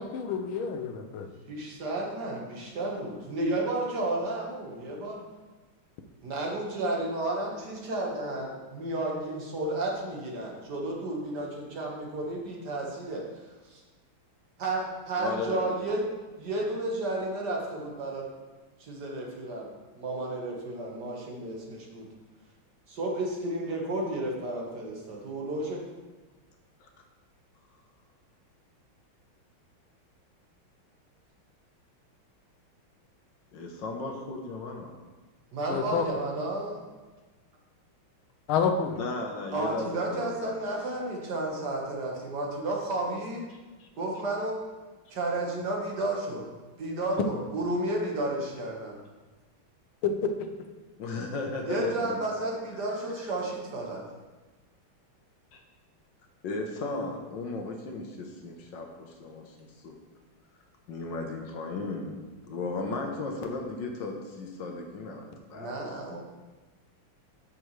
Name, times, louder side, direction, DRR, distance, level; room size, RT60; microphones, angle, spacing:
voice 1, 0.0-1.3 35.7-36.1 38.5-39.0 50.0-50.5, left 6 dB, 80° left, 6 dB, 1.6 m, -28 dB
voice 2, 1.5-5.2 6.2-13.8 14.6-16.1 16.4-18.3 18.8-22.1 22.9-25.8 35.5-36.8 39.5-43.4 44.0-44.6 45.1-46.5 46.8-49.0 51.7-54.0 65.5-66.2, right 2 dB, 55° right, -1 dB, 1.9 m, -32 dB
voice 3, 15.2-15.7 26.8-26.9 33.5-34.9 39.0-40.5 43.8-43.9 51.0-52.2 55.5-55.6 56.4-60.0 60.9-62.2 62.5-66.2, left 3 dB, 65° left, 2 dB, 1.5 m, -36 dB
8.6 x 7.8 x 3.1 m, 1.3 s
omnidirectional pair, 2.3 m